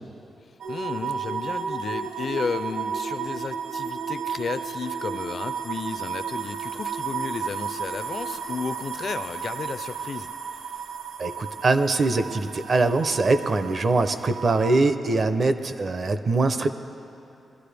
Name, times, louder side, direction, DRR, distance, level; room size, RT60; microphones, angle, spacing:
sound 1, 0.6-14.8, right 6 dB, 85° right, 0.8 m, -33 dB
voice 1, 0.7-10.3, left 5 dB, 45° left, 12 dB, 0.4 m, -33 dB
voice 2, 11.2-16.7, right 3 dB, 40° right, 9 dB, 0.6 m, -22 dB
21.5 x 13.5 x 3.4 m, 2.8 s
wide cardioid pair, 180°, 0 cm